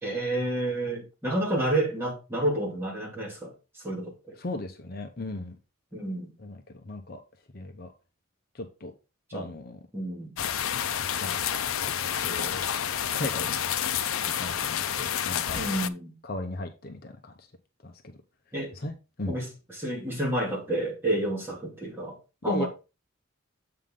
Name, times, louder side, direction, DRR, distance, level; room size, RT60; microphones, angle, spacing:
voice 1, 0.0-4.4 5.9-6.3 9.3-9.5 9.9-10.3 15.5-16.2 18.5-18.7 19.3-22.2 22.4-22.7, right 1 dB, 10° right, 2.7 m, -30 dB
voice 2, 4.4-5.6 6.4-7.2 7.5-7.9 8.5-8.9 9.3-9.8 11.2-11.6 12.0-12.6 13.1-13.6 14.2-15.6 16.2-17.5 17.8-18.2 18.7-19.4 22.5-22.7, left 1 dB, 45° left, 0.8 m, -37 dB
sound 1, 10.4-15.9, left 9 dB, 80° left, 0.5 m, -29 dB
7.7 x 5.5 x 3.8 m
head